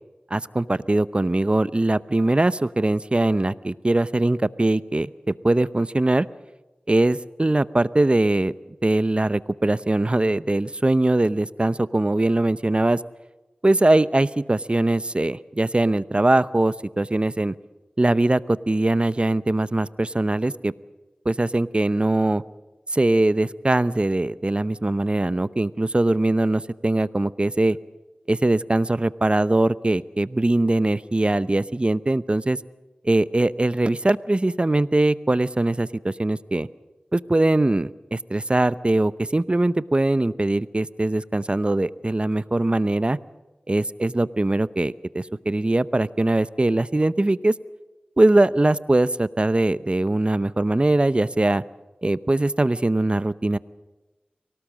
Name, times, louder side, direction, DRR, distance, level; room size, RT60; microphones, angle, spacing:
voice 1, 0.3-6.3 6.9-8.5 8.8-13.0 13.6-17.5 18.0-20.7 21.2-22.4 22.9-27.8 28.3-32.6 33.0-36.7 37.1-43.2 43.7-47.5 48.2-51.6 52.0-53.6, right 2 dB, 35° right, 16 dB, 0.7 m, -21 dB
24.0 x 18.0 x 7.5 m, 1.1 s
cardioid pair, 40°, 3 cm